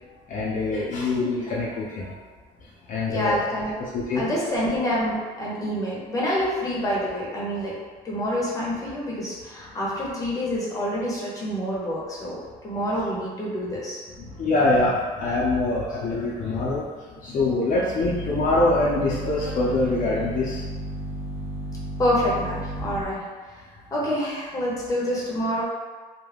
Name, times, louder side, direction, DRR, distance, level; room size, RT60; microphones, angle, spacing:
voice 1, 0.3-2.2 2.9-3.4 3.9-4.3 14.2-16.9 17.2-20.6, left 2 dB, 50° left, -6 dB, 0.5 m, -24 dB
voice 2, 3.1-3.7 4.1-7.7 8.0-12.4 12.6-14.0 22.0-23.2 23.9-25.6, equal, 20° left, -5 dB, 0.8 m, -27 dB
sound 1, 18.0-23.0, right 1 dB, 40° right, 0.5 m, -33 dB
2.3 x 2.1 x 3.3 m, 1.5 s
cardioid pair, 110°, 17 cm